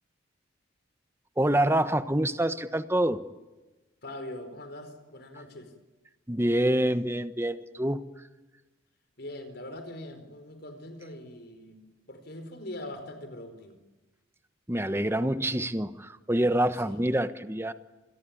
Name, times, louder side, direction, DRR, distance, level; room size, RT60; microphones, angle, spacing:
voice 1, 1.4-3.2 6.3-8.0 14.7-17.7, right 1 dB, 10° right, 11 dB, 1.2 m, -26 dB
voice 2, 4.0-5.7 9.2-11.8 12.1-13.8 16.8-17.0, left 1 dB, 55° left, 8 dB, 4.7 m, -42 dB
28.5 x 22.0 x 8.8 m, 1.1 s
head